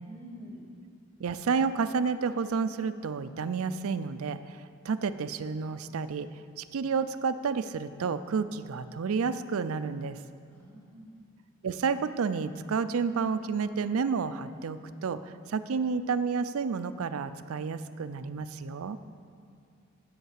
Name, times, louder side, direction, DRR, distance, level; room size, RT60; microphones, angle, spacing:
voice 1, 0.0-0.6 10.5-11.3 19.3-19.5, equal, 10° left, -6 dB, 2.3 m, -47 dB
voice 2, 1.2-6.3 6.6-10.2 11.6-19.0, right 5 dB, 75° right, 13 dB, 0.4 m, -30 dB
7.9 x 7.2 x 8.2 m, 2.3 s
head